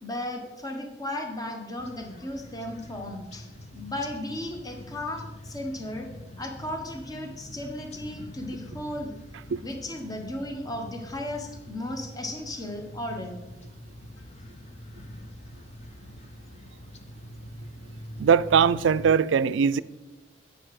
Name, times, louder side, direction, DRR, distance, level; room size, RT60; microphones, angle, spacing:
voice 1, 0.0-6.1 6.4-9.1 9.6-13.4, left 1 dB, 20° left, 1.1 m, -35 dB
sound 1, 1.8-19.1, left 1 dB, 35° left, 0.7 m, -44 dB
voice 2, 18.2-19.8, right 6 dB, 65° right, 0.3 m, -21 dB
9.3 x 7.9 x 4.8 m
head